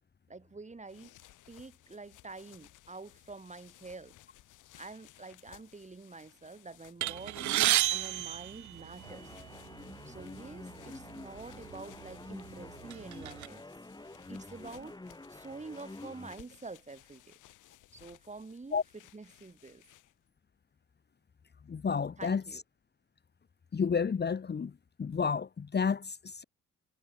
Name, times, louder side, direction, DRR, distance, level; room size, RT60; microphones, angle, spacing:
voice 1, 0.3-1.1 1.5-4.1 4.8-9.3 10.0-13.7 14.3-15.0 15.3-17.4 17.9-18.8 19.1-19.8 22.2-22.6, right 3 dB, 25° right, 7.0 m, -47 dB
sound 1, 0.7-20.3, left 15 dB, 90° left, 7.1 m, -59 dB
sound 2, 7.0-9.3 10.2-10.3 10.6-10.8 11.7-11.8 12.3-13.5, right 15 dB, 70° right, 0.8 m, -31 dB
sound 3, 9.0-16.4, left 2 dB, 15° left, 6.0 m, -48 dB
voice 2, 21.7-22.4 23.7-24.7 25.0-26.4, left 6 dB, 35° left, 1.5 m, -31 dB
cardioid pair, 90°, 30 cm